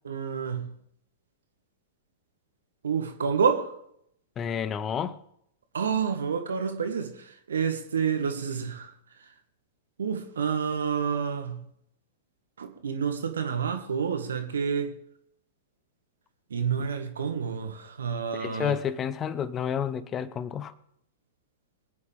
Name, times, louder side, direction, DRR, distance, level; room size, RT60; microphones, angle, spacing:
voice 1, 0.1-0.7 2.8-3.7 5.7-7.1 7.5-8.9 10.0-11.6 12.6-14.9 16.5-18.7, right 6 dB, 70° right, 1.9 m, -28 dB
voice 2, 4.4-5.2 18.4-20.7, left 8 dB, 25° left, 0.9 m, -30 dB
24.5 x 9.5 x 3.6 m
figure-of-eight pair, 100°, 0 cm